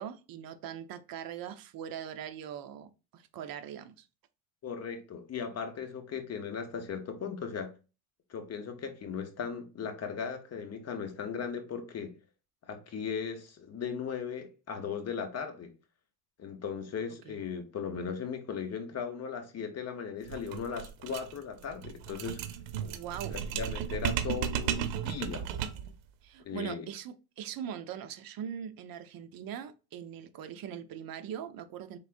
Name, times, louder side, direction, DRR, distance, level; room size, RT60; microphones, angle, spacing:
voice 1, 0.0-4.1 17.2-17.4 22.8-23.4 26.2-32.0, right 9 dB, 50° right, 0.7 m, -41 dB
voice 2, 4.6-7.7 8.3-12.1 12.7-15.7 16.4-22.4 23.3-25.4 26.4-26.8, left 6 dB, 35° left, 1.0 m, -37 dB
sound 1, 20.2-26.0, right 9 dB, 80° right, 0.8 m, -34 dB
4.7 x 3.6 x 2.5 m
cardioid pair, 135°, 46 cm